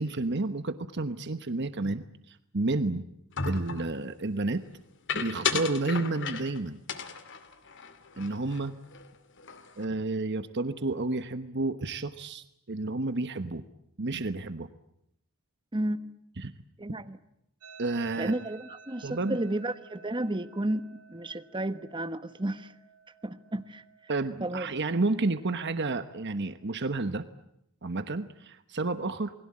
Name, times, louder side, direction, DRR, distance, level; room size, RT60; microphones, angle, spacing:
voice 1, 0.0-3.0 3.4-4.6 5.1-6.8 8.2-8.8 9.8-13.6 14.0-14.7 16.4-16.5 17.8-18.3 19.0-19.4 24.1-27.2 27.8-29.3, right 2 dB, 55° right, 1.2 m, -31 dB
sound 1, 3.4-3.9 5.1-6.6 6.9-8.6 8.9-9.1 9.4-9.9, left 5 dB, 55° left, 2.4 m, -34 dB
voice 2, 15.7-16.1 16.8-17.2 18.2-22.7 23.2-23.8 24.4-24.7, right 1 dB, 20° right, 1.2 m, -32 dB
sound 2, 17.6-26.7, right 5 dB, 85° right, 7.0 m, -55 dB
28.5 x 21.5 x 8.7 m
head